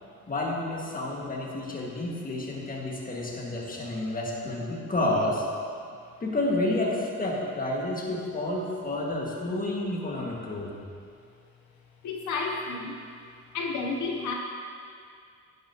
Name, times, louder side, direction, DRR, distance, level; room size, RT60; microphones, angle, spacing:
voice 1, 0.3-5.4 6.2-10.7, left 1 dB, 30° left, -2 dB, 1.9 m, -30 dB
voice 2, 12.0-13.0 13.5-14.3, left 4 dB, 75° left, 0 dB, 0.9 m, -31 dB
11.0 x 10.0 x 2.9 m, 2.3 s
cardioid pair, 90°, 30 cm